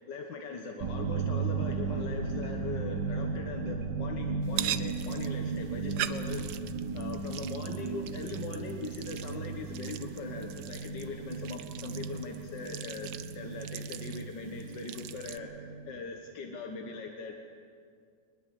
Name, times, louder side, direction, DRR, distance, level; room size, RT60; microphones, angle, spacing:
voice 1, 0.1-6.6 6.9-17.4, left 4 dB, 85° left, 3 dB, 1.9 m, -40 dB
sound 1, 0.8-16.0, right 4 dB, 90° right, 1.9 m, -36 dB
sound 2, 4.4-15.4, right 11 dB, 70° right, 1.2 m, -42 dB
22.0 x 21.0 x 7.5 m, 2.2 s
omnidirectional pair, 1.9 m